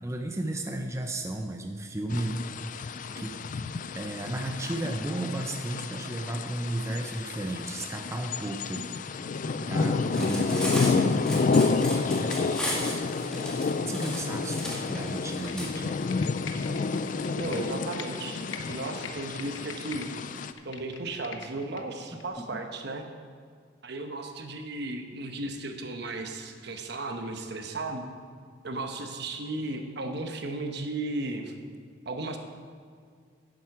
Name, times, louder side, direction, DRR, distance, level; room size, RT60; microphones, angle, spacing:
voice 1, 0.0-2.4 2.9-3.3 4.0-8.9 9.3-11.8 12.0-12.5 13.8-16.0 22.1-22.6, right 1 dB, 15° right, 4 dB, 0.5 m, -34 dB
sound 1, 2.1-20.5, left 4 dB, 45° left, 0.4 m, -30 dB
Cutlery silverware, 10.0-15.7, equal, 5° left, 1.9 m, -35 dB
Computer keyboard, 15.5-18.1 18.4-20.1 20.4-21.8 22.2-22.3, left 6 dB, 75° left, 0.8 m, -43 dB
voice 2, 17.4-20.1 20.6-23.1 23.8-28.1 28.6-31.5 32.0-32.4, right 2 dB, 60° right, 5 dB, 1.0 m, -35 dB
10.5 x 7.7 x 6.0 m, 2.1 s
head